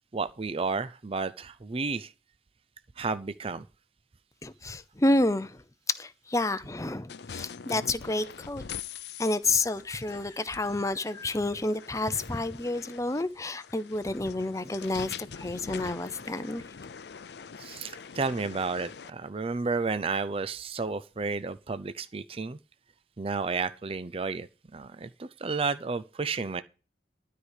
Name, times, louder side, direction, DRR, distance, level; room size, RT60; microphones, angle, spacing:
voice 1, 0.1-2.1 3.0-3.6 17.6-22.6 23.2-24.5 24.7-26.6, right 4 dB, 30° right, 0.5 m, -32 dB
voice 2, 4.4-8.6 9.2-16.6, left 2 dB, 15° left, 0.6 m, -29 dB
sound 1, 7.1-19.1, left 6 dB, 65° left, 0.5 m, -44 dB
12.5 x 4.9 x 8.2 m
head